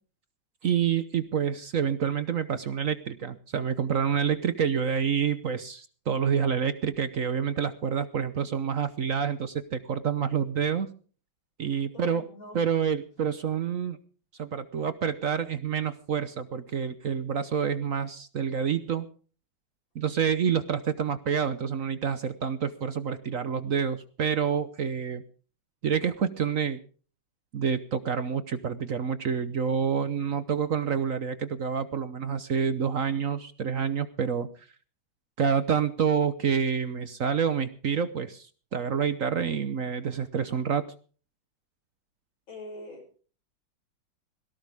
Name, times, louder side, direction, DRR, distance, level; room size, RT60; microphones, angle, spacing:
voice 1, 0.6-10.9 11.6-12.2 12.5-14.0 14.4-19.1 19.9-25.2 25.8-26.8 27.5-34.5 35.4-40.8, right 7 dB, 50° right, 13 dB, 1.1 m, -28 dB
voice 2, 11.9-12.6 42.5-43.2, left 1 dB, 90° left, 2 dB, 7.4 m, -44 dB
18.0 x 17.5 x 3.5 m, 0.40 s
omnidirectional pair, 2.1 m